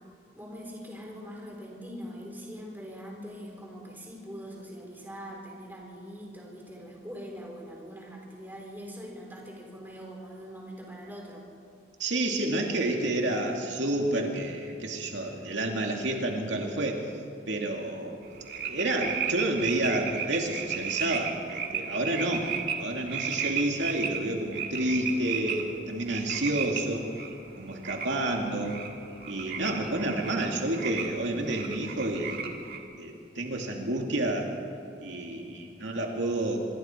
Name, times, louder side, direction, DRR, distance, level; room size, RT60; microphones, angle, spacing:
voice 1, 0.4-11.4, equal, 10° right, -1 dB, 4.0 m, -42 dB
voice 2, 12.0-17.0 17.5-18.2 18.6-22.5 22.8-27.0 27.6-28.8 29.3-32.4 33.0-34.5 35.0-36.6, right 1 dB, 85° right, 1 dB, 2.5 m, -29 dB
sound 1, 18.2-32.8, right 6 dB, 55° right, 1.9 m, -35 dB
25.5 x 23.0 x 4.5 m, 2.4 s
head